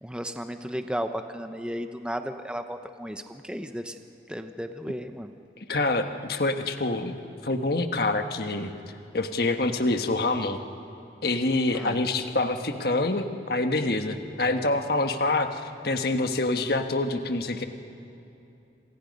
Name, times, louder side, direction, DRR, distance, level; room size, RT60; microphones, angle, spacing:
voice 1, 0.0-4.0 4.3-5.3 11.7-12.0, equal, 5° right, 7 dB, 0.8 m, -34 dB
voice 2, 5.7-7.2 7.4-8.7 9.1-10.6 11.2-17.6, left 2 dB, 60° left, 6 dB, 1.4 m, -26 dB
27.0 x 27.0 x 5.4 m, 2.8 s
head